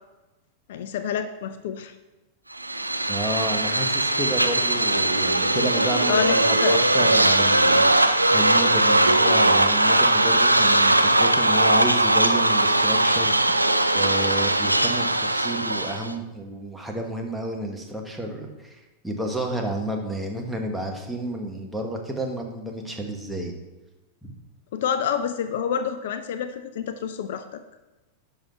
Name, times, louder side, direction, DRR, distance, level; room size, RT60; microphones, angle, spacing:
voice 1, 0.7-1.9 6.1-6.7 24.7-27.6, left 8 dB, 55° left, 10 dB, 0.5 m, -28 dB
sound 1, 2.6-16.1, right 1 dB, 85° right, 0.4 m, -20 dB
voice 2, 3.1-13.3 13.9-23.5 24.2-24.3, right 1 dB, 5° right, 1 dB, 1.5 m, -31 dB
10.5 x 5.8 x 4.3 m, 1.1 s
figure-of-eight pair, 90°, 0 cm